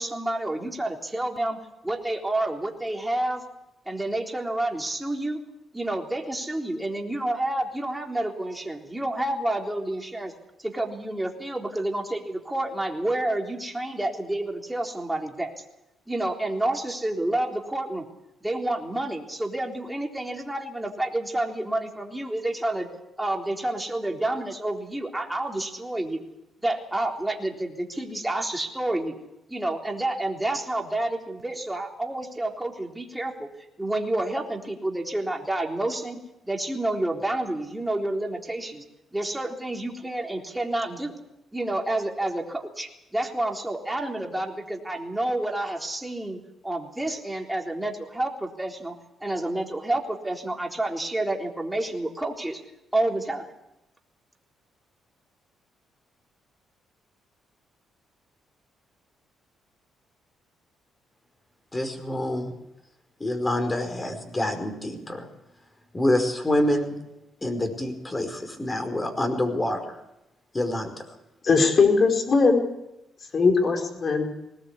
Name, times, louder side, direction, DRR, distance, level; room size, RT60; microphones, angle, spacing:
voice 1, 0.0-1.6 1.8-3.4 3.9-5.4 5.7-10.3 10.6-15.5 16.1-18.1 18.4-22.9 23.2-26.3 26.6-29.1 29.5-33.5 33.8-38.8 39.1-41.2 41.5-49.0 49.2-52.6 52.9-53.5, right 1 dB, 10° right, 1 dB, 3.7 m, -29 dB
voice 2, 61.7-62.6 63.2-65.3 65.9-67.0 67.4-70.0 70.5-71.0, left 1 dB, 20° left, 7 dB, 5.0 m, -27 dB
voice 3, 71.4-72.7 73.3-74.3, left 4 dB, 45° left, 3 dB, 4.9 m, -20 dB
20.5 x 18.5 x 8.3 m, 0.89 s
cardioid pair, 90°, 0 cm